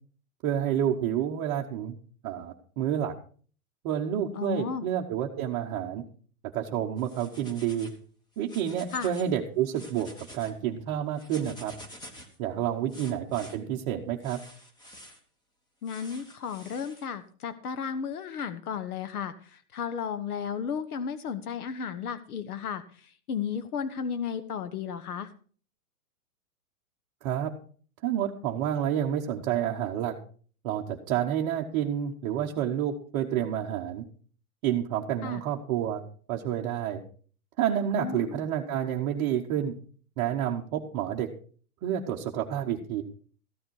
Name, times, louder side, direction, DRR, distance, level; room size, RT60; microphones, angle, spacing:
voice 1, 0.4-2.0 2.2-3.1 3.8-6.0 6.5-7.9 8.4-11.7 12.4-14.4 27.2-27.5 28.0-30.2 30.6-34.0 34.6-36.0 36.3-37.0 37.6-39.7 40.2-41.3 41.8-43.0, right 10 dB, 25° right, -1 dB, 0.9 m, -29 dB
voice 2, 4.3-4.9 8.9-9.1 15.8-25.3 35.2-35.4 38.0-38.4, left 7 dB, 80° left, 11 dB, 1.2 m, -34 dB
sound 1, 7.0-8.0 8.4-9.3 9.6-10.5 11.2-12.4 12.9-13.6 14.2-15.2 15.8-17.1, equal, 10° left, 1.1 m, -48 dB
14.0 x 10.0 x 4.6 m, 0.43 s
hypercardioid pair, 160°, 44 cm